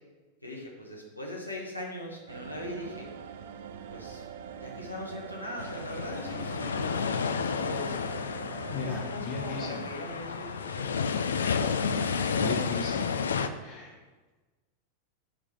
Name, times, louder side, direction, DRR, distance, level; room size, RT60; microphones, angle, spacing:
voice 1, 0.4-3.1 3.9-4.3 4.6-7.9 8.7-11.0, left 1 dB, 85° left, -2 dB, 1.0 m, -40 dB
sound 1, 2.3-9.1, right 7 dB, 55° right, 0.4 m, -43 dB
sound 2, 5.6-13.5, left 6 dB, 70° left, 0.4 m, -31 dB
voice 2, 8.7-9.9 12.1-13.1 13.6-13.9, left 3 dB, 30° left, -3 dB, 0.9 m, -37 dB
5.1 x 4.8 x 5.8 m, 1.3 s
figure-of-eight pair, 90°, 0 cm